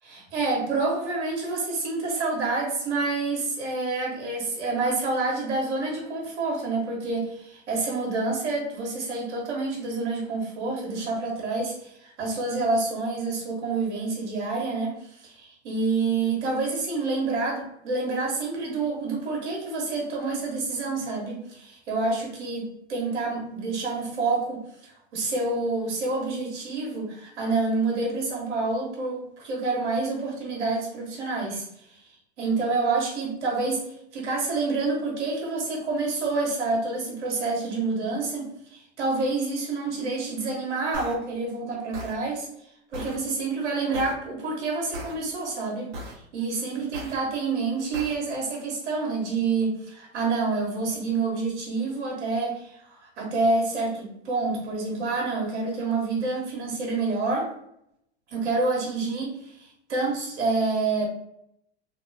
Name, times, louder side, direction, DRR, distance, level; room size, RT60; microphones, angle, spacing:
voice 1, 0.0-22.6 22.9-31.6 32.4-33.8 34.1-42.5 42.9-57.5 58.3-61.1, right 3 dB, 85° right, -1 dB, 1.1 m, -28 dB
sound 1, 40.9-41.1 41.9-42.1 42.9-43.1 43.9-44.1 44.9-45.1 45.9-46.1 46.9-47.1 47.9-48.1, equal, 60° right, 0.9 m, -37 dB
2.8 x 2.5 x 2.6 m, 0.77 s
hypercardioid pair, 105°, 34 cm